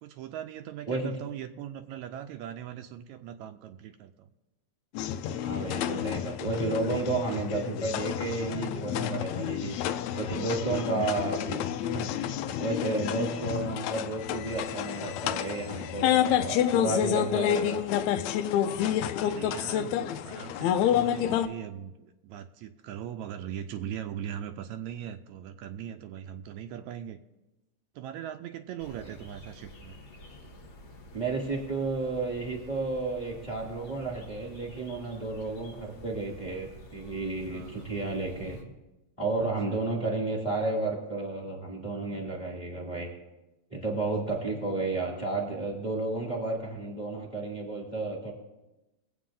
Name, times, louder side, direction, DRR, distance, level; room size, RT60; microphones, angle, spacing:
voice 1, 0.0-4.3 10.5-10.6 16.0-16.5 19.1-27.2 28.0-30.0 35.2-35.6 37.5-37.9 39.4-39.8 44.3-44.4, right 10 dB, 80° right, 8 dB, 1.8 m, -40 dB
sound 1, 4.9-21.5, left 10 dB, 80° left, 1.8 m, -29 dB
voice 2, 5.3-9.7 10.1-11.6 11.9-12.1 12.6-17.8 29.0-29.1 31.1-38.6 39.2-43.1 43.7-48.3, right 3 dB, 15° left, -1 dB, 1.8 m, -32 dB
sound 2, 28.8-38.6, equal, 55° left, 0.7 m, -49 dB
21.5 x 8.2 x 3.8 m, 1.0 s
omnidirectional pair, 3.4 m